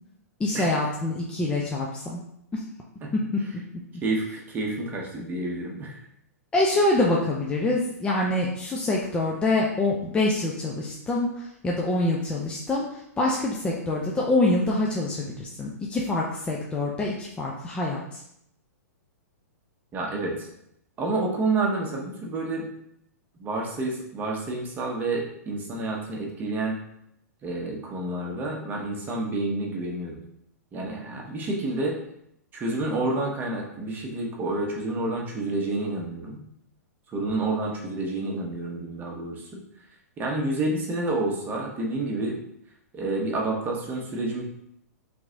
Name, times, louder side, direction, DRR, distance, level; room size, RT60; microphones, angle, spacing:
voice 1, 0.4-2.2 2.5-2.6 3.1-3.2 6.5-12.9 13.2-18.2, left 2 dB, 10° left, -3 dB, 0.5 m, -25 dB
voice 2, 4.0-6.0 19.9-20.5 21.0-22.7 23.4-26.8 27.4-30.2 30.7-32.0 32.5-36.4 37.1-39.6 40.2-42.4 42.9-44.4, right 2 dB, 20° right, -1 dB, 1.0 m, -29 dB
3.5 x 3.0 x 3.8 m, 0.76 s
figure-of-eight pair, 110°, 9 cm